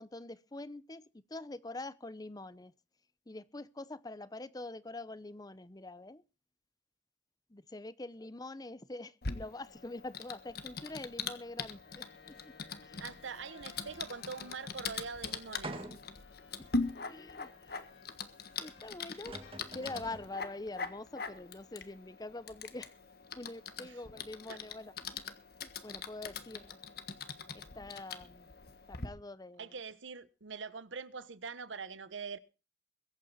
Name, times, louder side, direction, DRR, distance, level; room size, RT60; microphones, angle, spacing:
voice 1, 0.0-2.7 3.3-6.2 7.5-12.0 12.4-12.5 12.8-13.0 16.6-16.7 17.1-17.9 18.6-19.4 19.7-23.0 23.4-25.4 25.6-26.8 27.5-28.5 28.9-29.8, left 2 dB, 20° left, 0.7 m, -45 dB
Typing, 9.2-29.1, left 4 dB, 55° left, 1.4 m, -42 dB
sound 1, 11.7-19.1 19.4-21.8, left 5 dB, 75° left, 5.1 m, -61 dB
voice 2, 13.0-15.8 23.8-24.0 24.5-24.6 29.6-32.4, right 5 dB, 90° right, 1.0 m, -43 dB
sound 2, 15.6-16.2 16.9-17.0 18.8-18.9 19.1-20.3, right 2 dB, 30° right, 1.9 m, -45 dB
22.5 x 8.9 x 4.1 m
head